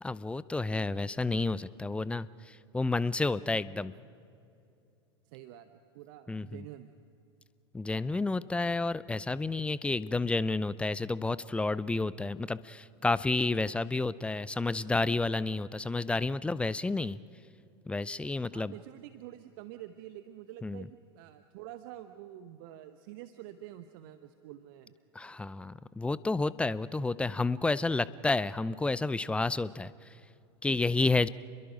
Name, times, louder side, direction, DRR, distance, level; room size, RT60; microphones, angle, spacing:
voice 1, 0.0-3.9 6.3-6.6 7.7-17.2 17.9-18.7 20.6-20.8 25.2-29.9 30.6-31.3, left 3 dB, 10° left, 18 dB, 0.5 m, -30 dB
voice 2, 5.2-6.9 18.5-24.9, right 13 dB, 50° right, 10 dB, 0.9 m, -48 dB
29.5 x 22.0 x 5.0 m, 2.6 s
figure-of-eight pair, 80°, 14 cm